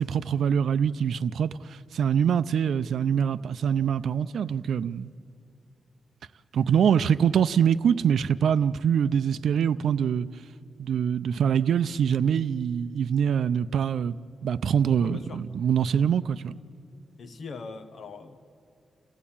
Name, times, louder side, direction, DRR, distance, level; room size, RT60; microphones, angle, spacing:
voice 1, 0.0-5.1 6.5-10.3 10.8-14.2 14.4-16.5, right 8 dB, 80° right, 0.5 m, -24 dB
voice 2, 15.0-15.5 17.2-18.4, left 4 dB, 60° left, 1.1 m, -40 dB
29.0 x 16.0 x 8.6 m
wide cardioid pair, 145°, 0 cm